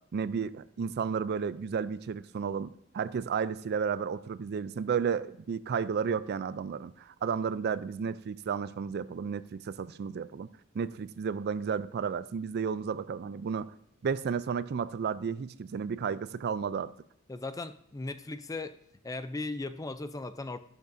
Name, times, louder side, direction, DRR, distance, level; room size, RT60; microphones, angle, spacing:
voice 1, 0.1-10.5 10.7-13.7 14.0-16.9, right 6 dB, 50° right, 16 dB, 0.4 m, -32 dB
voice 2, 17.3-18.8 19.0-20.6, left 2 dB, 15° left, 11 dB, 0.4 m, -37 dB
12.0 x 12.0 x 2.6 m, 0.69 s
head